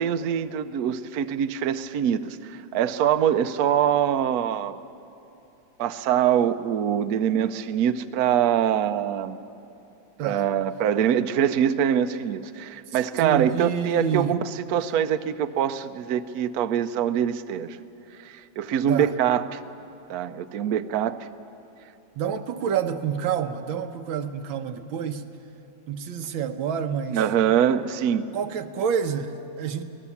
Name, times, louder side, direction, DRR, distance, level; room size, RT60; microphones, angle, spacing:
voice 1, 0.0-4.8 5.8-9.4 10.2-14.4 14.7-17.8 18.2-19.6 20.1-21.3 27.1-28.3, right 9 dB, 65° right, 10 dB, 1.0 m, -24 dB
voice 2, 12.9-14.3 18.9-19.1 22.2-25.3 25.9-27.2 28.3-29.8, right 7 dB, 90° right, 7 dB, 1.7 m, -28 dB
24.5 x 18.0 x 7.1 m, 2.8 s
omnidirectional pair, 2.1 m